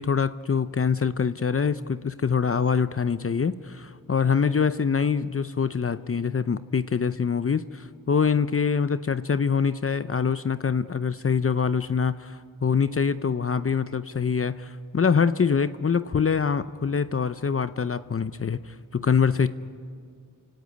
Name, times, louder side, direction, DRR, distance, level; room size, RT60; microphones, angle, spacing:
voice 1, 0.0-19.5, left 6 dB, 40° left, 12 dB, 0.7 m, -24 dB
29.5 x 17.0 x 9.3 m, 2.1 s
cardioid pair, 55°, 34 cm